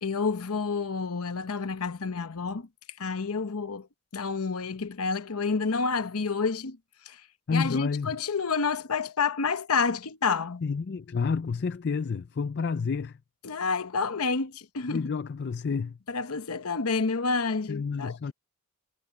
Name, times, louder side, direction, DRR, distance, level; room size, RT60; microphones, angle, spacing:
voice 1, 0.0-2.7 3.0-3.9 4.1-6.8 7.0-7.2 7.5-10.7 13.4-15.1 16.1-18.3, left 4 dB, 80° left, 0.9 m, -29 dB
voice 2, 7.5-8.2 10.6-13.2 14.9-16.0 17.7-18.3, left 5 dB, 50° left, 0.4 m, -29 dB
head